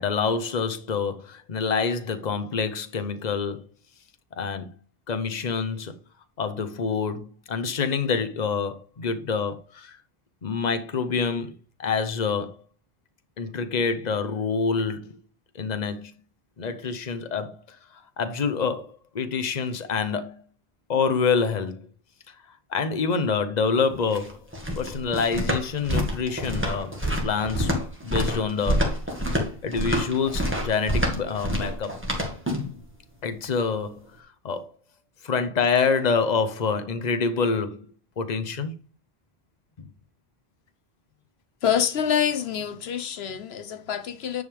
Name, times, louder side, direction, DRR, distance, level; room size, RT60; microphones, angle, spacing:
voice 1, 0.0-3.7 4.4-4.7 5.1-5.9 6.4-10.0 10.4-11.5 11.8-12.6 13.4-15.2 15.5-16.1 16.6-20.4 20.9-21.9 22.3-24.4 24.8-27.0 27.2-27.7 28.0-28.9 29.6-32.0 33.2-34.7 35.2-37.9 38.2-38.7 39.8-39.9, left 5 dB, 45° left, 1.0 m, -27 dB
sound 1, 23.9-32.8, equal, 10° right, 2.0 m, -27 dB
voice 2, 41.6-44.4, left 8 dB, 80° left, 1.1 m, -26 dB
10.0 x 5.4 x 3.4 m
omnidirectional pair, 1.0 m